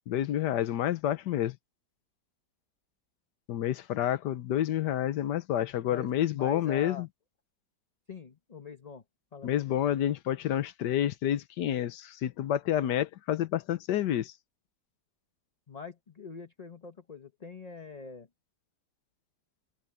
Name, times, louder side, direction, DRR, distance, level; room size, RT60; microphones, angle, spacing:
voice 1, 0.1-1.6 3.5-7.1 9.4-14.3, left 11 dB, 85° left, 1.4 m, -29 dB
voice 2, 5.9-7.1 8.1-9.0 9.3-9.7 15.7-18.3, left 5 dB, 30° left, 0.9 m, -44 dB
omnidirectional pair, 1.8 m